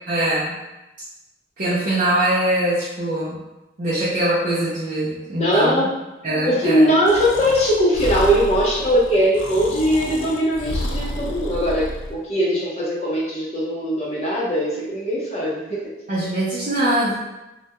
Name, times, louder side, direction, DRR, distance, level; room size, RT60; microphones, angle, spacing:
voice 1, 0.1-0.6 1.6-3.4 3.8-5.9 6.2-6.9 16.1-17.1, right 1 dB, 45° right, -9 dB, 0.4 m, -22 dB
voice 2, 5.4-5.9 6.5-15.9, equal, 35° left, -6 dB, 0.6 m, -20 dB
Breathing, 7.1-12.2, left 1 dB, 85° left, 0.4 m, -30 dB
2.2 x 2.1 x 2.8 m, 0.99 s
head